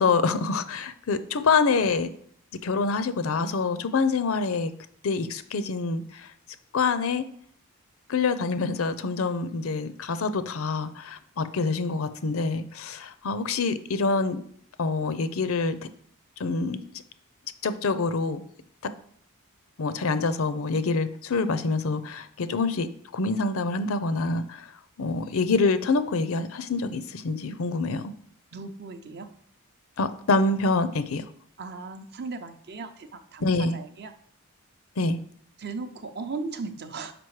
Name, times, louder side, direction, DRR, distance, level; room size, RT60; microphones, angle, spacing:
voice 1, 0.0-2.1 2.6-4.7 5.0-6.3 6.7-7.2 8.1-14.4 14.8-15.8 16.4-16.8 17.6-18.4 18.8-18.9 19.8-22.9 23.1-24.7 25.0-28.1 30.0-31.2 33.4-33.8 35.0-35.2, left 4 dB, 65° left, 12 dB, 0.5 m, -26 dB
voice 2, 28.5-29.3 31.6-33.5 33.7-34.1 35.6-37.1, right 4 dB, 50° right, 8 dB, 0.6 m, -37 dB
6.0 x 5.0 x 4.8 m, 0.62 s
head